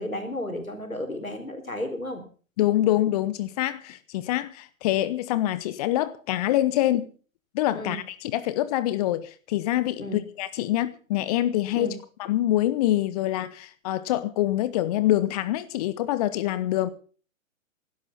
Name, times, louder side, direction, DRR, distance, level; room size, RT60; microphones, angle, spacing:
voice 1, 0.0-2.2 7.7-8.0 10.0-10.2 11.7-11.9, left 1 dB, 90° left, 6 dB, 4.2 m, -33 dB
voice 2, 2.6-7.1 7.5-11.9 12.2-16.9, left 14 dB, 30° left, 15 dB, 0.8 m, -25 dB
16.5 x 12.5 x 5.6 m, 0.40 s
figure-of-eight pair, 120°, 40 cm